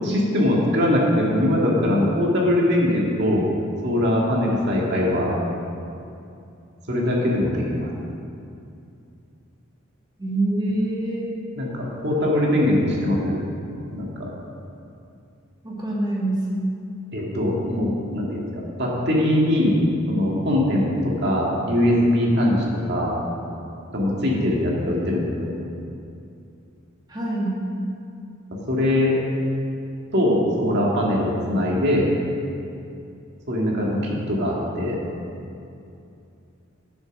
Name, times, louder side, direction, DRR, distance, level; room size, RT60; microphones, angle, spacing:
voice 1, 0.0-3.5 3.8-5.3 6.9-7.9 11.6-13.4 13.9-14.3 17.1-18.4 18.8-19.8 20.1-23.2 23.9-25.5 28.7-29.2 30.1-32.1 33.5-35.0, left 1 dB, 55° right, -3 dB, 2.0 m, -21 dB
voice 2, 10.2-11.3 15.6-16.4 27.1-27.6, right 1 dB, 20° right, -5 dB, 2.0 m, -25 dB
10.5 x 7.1 x 6.0 m, 2.6 s
head